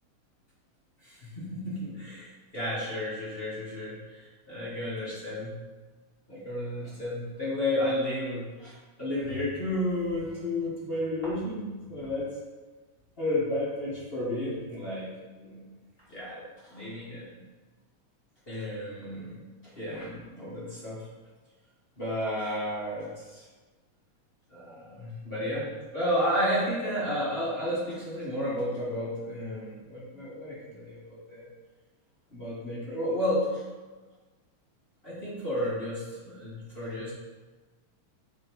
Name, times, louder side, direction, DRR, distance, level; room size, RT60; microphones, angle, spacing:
voice 1, 1.0-5.6 6.3-12.3 13.2-15.7 16.1-17.3 18.5-19.4 19.7-21.1 22.0-23.4 24.5-31.5 32.3-33.6 35.0-37.1, left 1 dB, 35° left, -9 dB, 0.9 m, -32 dB
8.9 x 3.5 x 4.6 m, 1.3 s
omnidirectional pair, 3.4 m